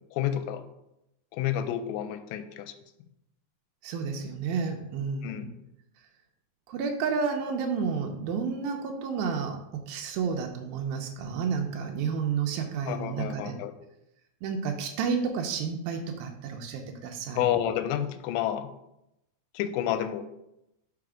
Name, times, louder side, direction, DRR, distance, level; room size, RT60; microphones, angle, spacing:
voice 1, 0.1-0.6 1.3-2.7 5.2-5.5 12.9-13.7 17.4-18.7 19.5-20.2, left 11 dB, 90° left, 10 dB, 2.8 m, -29 dB
voice 2, 3.8-5.5 6.7-13.6 14.4-17.4, right 5 dB, 90° right, 2 dB, 2.0 m, -31 dB
6.8 x 4.1 x 4.9 m, 0.85 s
omnidirectional pair, 5.0 m